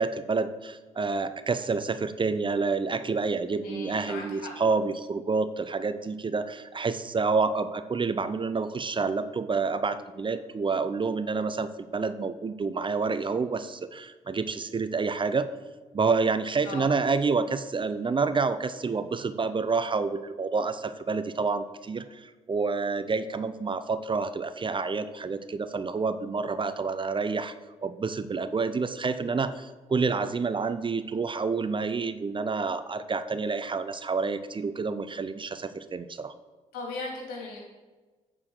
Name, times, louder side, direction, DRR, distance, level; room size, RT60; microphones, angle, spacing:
voice 1, 0.0-15.5 15.9-27.5 27.8-36.3, right 4 dB, 30° right, 12 dB, 0.6 m, -28 dB
voice 2, 3.6-4.5 16.6-16.9 36.7-37.6, left 3 dB, 75° left, -1 dB, 2.5 m, -37 dB
8.5 x 4.8 x 6.3 m, 1.3 s
hypercardioid pair, 45°, 16 cm